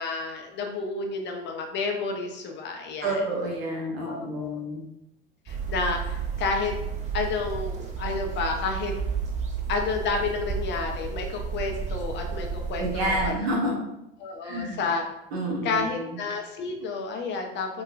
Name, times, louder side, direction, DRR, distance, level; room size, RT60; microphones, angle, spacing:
voice 1, 0.0-3.3 4.1-4.6 5.5-6.7 7.1-8.9 9.7-13.3 14.2-15.0 15.6-17.8, left 4 dB, 35° left, 3 dB, 0.5 m, -30 dB
voice 2, 3.0-4.8 12.8-13.7 14.4-14.8 15.3-15.8, right 1 dB, 80° right, -2 dB, 0.9 m, -28 dB
sound 1, 5.5-13.3, right 6 dB, 25° right, 0.4 m, -32 dB
2.9 x 2.2 x 2.5 m, 0.88 s
hypercardioid pair, 80°, 30 cm